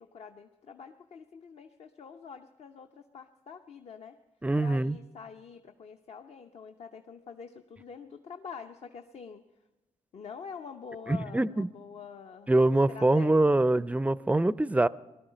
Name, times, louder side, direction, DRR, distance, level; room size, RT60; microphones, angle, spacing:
voice 1, 0.0-4.2 4.6-9.4 10.1-12.5 12.9-13.8, left 6 dB, 60° left, 5 dB, 0.7 m, -46 dB
voice 2, 4.4-5.0 11.1-11.7 12.5-14.9, right 2 dB, 10° right, 19 dB, 0.4 m, -24 dB
18.5 x 12.0 x 5.1 m, 1.1 s
cardioid pair, 65°, 12 cm